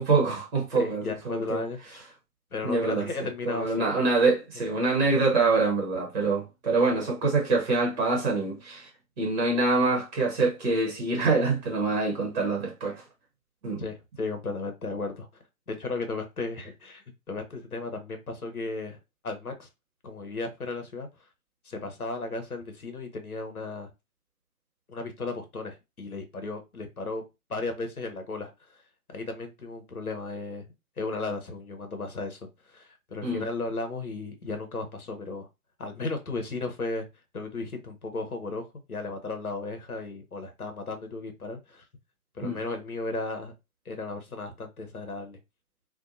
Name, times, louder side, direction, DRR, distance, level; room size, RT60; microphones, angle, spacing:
voice 1, 0.0-1.6 2.6-3.1 3.4-8.9 9.2-13.0 13.6-13.8 33.2-33.4 42.4-42.6, right 3 dB, 30° right, 0.9 m, -25 dB
voice 2, 0.8-2.0 2.5-3.9 13.8-15.3 15.7-19.0 19.2-19.7 20.0-21.1 21.6-23.9 24.9-27.2 27.5-28.5 29.1-30.7 31.0-32.4 32.6-35.5 35.8-37.1 37.3-41.8 42.3-43.5 43.9-45.4, left 3 dB, 85° left, 0.9 m, -35 dB
2.6 x 2.2 x 2.5 m
figure-of-eight pair, 130°, 43 cm